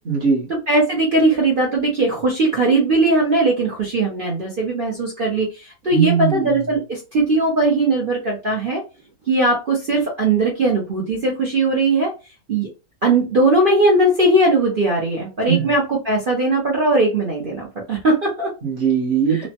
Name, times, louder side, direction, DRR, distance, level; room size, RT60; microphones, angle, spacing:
voice 1, 0.1-0.5 5.9-6.5 15.5-15.7 18.6-19.5, right 7 dB, 45° right, 0.9 m, -19 dB
voice 2, 0.7-8.8 9.3-12.1 12.5-12.7 13.0-18.5 19.3-19.4, right 2 dB, 65° right, 0.5 m, -19 dB
3.1 x 2.1 x 2.8 m
omnidirectional pair, 1.9 m